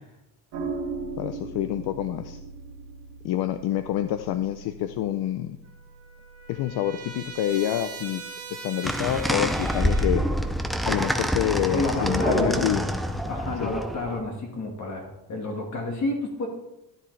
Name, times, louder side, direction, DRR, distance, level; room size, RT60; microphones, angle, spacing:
sound 1, 0.5-9.1, right 4 dB, 70° right, 2.2 m, -40 dB
voice 1, 1.2-2.4 3.2-5.6 6.5-8.2 8.6-10.2 10.8-12.8 13.6-13.7, left 12 dB, 65° left, 10 dB, 0.6 m, -27 dB
Trumpet, 5.6-10.4, right 4 dB, 35° right, 1.9 m, -41 dB
sound 2, 8.8-14.2, equal, ahead, 0.4 m, -26 dB
voice 2, 11.7-12.7 13.3-16.5, left 2 dB, 40° left, 1 dB, 1.7 m, -30 dB
13.5 x 10.0 x 3.3 m, 0.92 s
cardioid pair, 165°, 42 cm